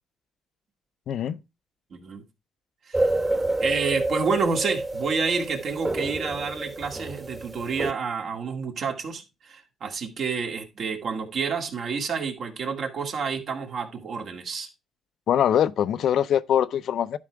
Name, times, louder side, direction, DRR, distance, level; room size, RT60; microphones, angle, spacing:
voice 1, 1.1-1.4 15.3-17.2, left 9 dB, 70° left, 0.5 m, -23 dB
voice 2, 1.9-2.2 2.9-3.1 3.6-14.7, right 5 dB, 60° right, 2.1 m, -29 dB
sound 1, 2.9-7.9, right 2 dB, 20° right, 1.3 m, -28 dB
11.0 x 4.9 x 4.6 m
cardioid pair, 90°, 0 cm